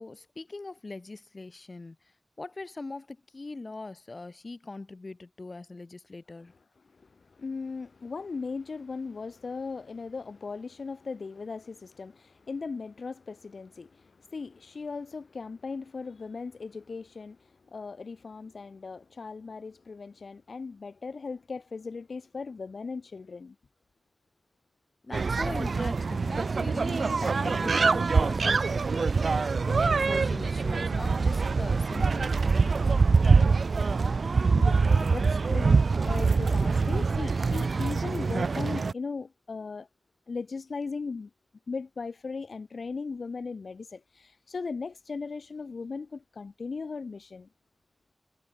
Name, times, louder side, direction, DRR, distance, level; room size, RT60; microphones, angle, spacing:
voice 1, 0.0-2.0 2.4-6.5 25.0-29.4 29.6-32.7, left 3 dB, 45° left, 4.3 m, -41 dB
voice 2, 6.9-23.6 34.5-35.8 36.0-39.9 40.3-41.3 41.7-47.5, left 4 dB, 75° left, 2.4 m, -38 dB
sound 1, 25.1-38.9, right 4 dB, 75° right, 1.1 m, -24 dB
wide cardioid pair, 95°, 0 cm